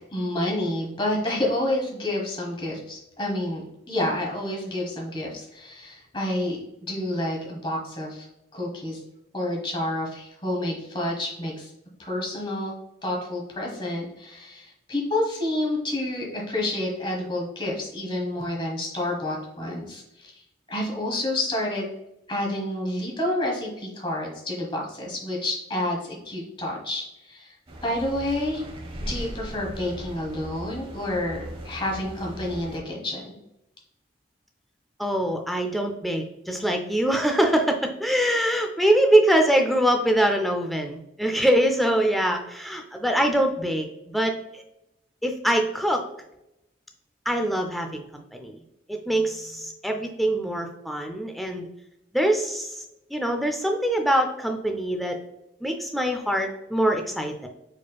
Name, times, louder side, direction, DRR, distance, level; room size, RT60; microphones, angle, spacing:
voice 1, 0.0-8.2 8.5-9.0 9.3-11.7 12.0-12.7 13.0-20.4 20.7-21.9 22.3-27.5 27.8-28.6 29.0-33.4, left 1 dB, 25° left, -2 dB, 1.3 m, -29 dB
sound 1, 27.7-32.8, equal, 30° right, 0.8 m, -38 dB
voice 2, 35.0-43.9 44.1-44.6 45.2-46.0 47.3-48.6 48.9-51.7 52.1-52.8 53.1-55.2 55.6-57.5, right 1 dB, ahead, 4 dB, 0.4 m, -23 dB
4.8 x 4.3 x 2.3 m, 0.85 s
head